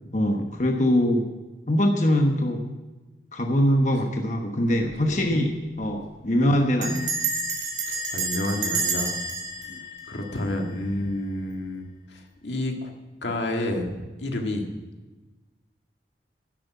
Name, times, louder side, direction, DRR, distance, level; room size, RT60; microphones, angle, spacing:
voice 1, 0.1-1.3 1.7-2.7 3.3-7.1 9.7-9.8, equal, 40° left, 3 dB, 1.1 m, -23 dB
Bell, 4.7-5.0 5.3-5.4 5.6-6.0 6.8-10.9, right 3 dB, 40° right, 2.4 m, -30 dB
voice 2, 7.9-9.2 10.1-12.9 13.2-14.7, left 1 dB, 80° left, 3 dB, 1.7 m, -30 dB
11.0 x 7.8 x 9.2 m, 1.2 s
head